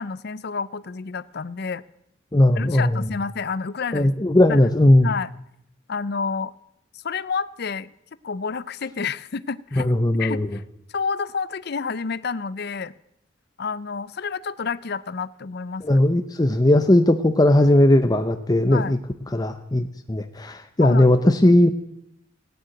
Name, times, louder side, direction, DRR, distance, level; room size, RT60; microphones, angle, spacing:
voice 1, 0.0-1.8 2.6-4.1 5.0-5.3 5.9-6.5 6.9-7.9 8.2-9.9 10.2-10.6 10.9-12.9 13.6-16.0 18.7-19.0 20.8-21.1, left 5 dB, 60° left, 17 dB, 0.6 m, -29 dB
voice 2, 2.3-3.1 3.9-5.1 9.7-10.6 15.8-19.0 19.3-21.7, left 1 dB, 20° left, 7 dB, 0.7 m, -18 dB
15.5 x 9.4 x 9.0 m, 0.80 s
head